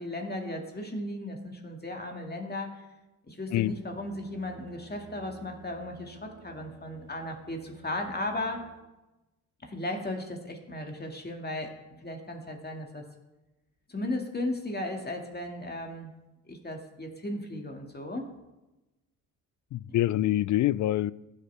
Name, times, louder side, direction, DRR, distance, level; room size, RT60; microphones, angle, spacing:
voice 1, 0.0-2.8 3.2-8.7 9.6-13.0 13.9-16.1 16.5-18.2, left 1 dB, 20° left, 2 dB, 2.3 m, -36 dB
sound 1, 3.5-8.8, right 5 dB, 50° right, 1.8 m, -53 dB
voice 2, 19.7-21.1, left 14 dB, 45° left, 21 dB, 0.4 m, -25 dB
16.5 x 6.5 x 3.5 m, 1.0 s
hypercardioid pair, 60°, 45 cm